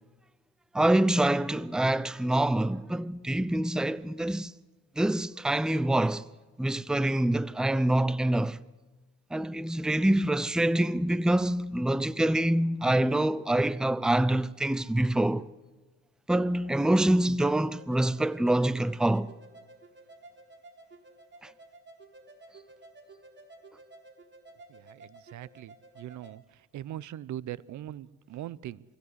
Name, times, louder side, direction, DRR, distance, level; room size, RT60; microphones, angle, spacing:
voice 1, 0.7-4.5 5.0-6.2 6.6-8.6 9.3-15.5 16.3-19.3, right 1 dB, ahead, 0.6 m, -25 dB
sound 1, 17.6-26.3, right 2 dB, 35° right, 4.1 m, -53 dB
voice 2, 24.7-26.4 26.7-28.8, right 12 dB, 75° right, 0.7 m, -41 dB
24.0 x 16.5 x 8.1 m
cardioid pair, 90°, 30 cm